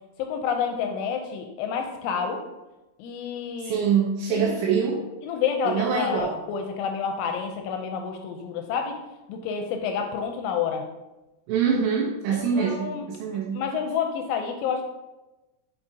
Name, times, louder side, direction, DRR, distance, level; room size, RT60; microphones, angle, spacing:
voice 1, 0.2-2.4 3.0-3.8 4.3-4.6 5.2-8.9 9.3-10.9 12.3-13.1 13.5-14.9, left 6 dB, 85° left, 4 dB, 2.8 m, -29 dB
voice 2, 3.6-5.0 5.6-6.4 11.5-13.6, right 6 dB, 80° right, -1 dB, 2.7 m, -24 dB
8.1 x 4.9 x 2.7 m, 1.0 s
omnidirectional pair, 5.8 m